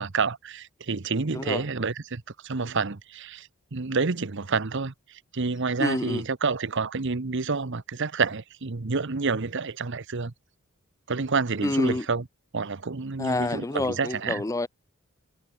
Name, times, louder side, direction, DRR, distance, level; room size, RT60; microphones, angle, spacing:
voice 1, 0.0-10.3 11.1-12.2 12.5-14.4, right 4 dB, 60° right, 0.9 m, -29 dB
voice 2, 1.3-1.6 5.8-6.2 11.6-12.1 13.2-14.7, left 2 dB, 15° left, 0.5 m, -28 dB
head